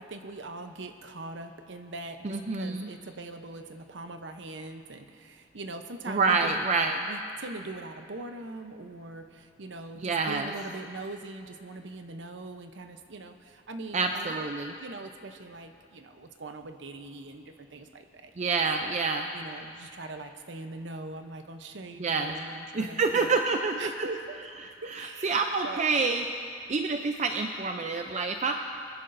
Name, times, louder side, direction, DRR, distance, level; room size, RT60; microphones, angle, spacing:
voice 1, 0.0-14.5 14.8-18.9 19.3-23.4 23.7-24.4 24.8-25.4 25.6-25.9, right 2 dB, 70° right, 7 dB, 0.8 m, -42 dB
voice 2, 2.2-2.9 6.1-7.0 10.0-10.5 13.9-14.7 18.4-19.3 22.0-22.3 22.7-24.1 24.9-26.2 26.7-28.5, right 4 dB, 40° right, 5 dB, 0.4 m, -27 dB
23.5 x 11.0 x 2.6 m, 2.5 s
head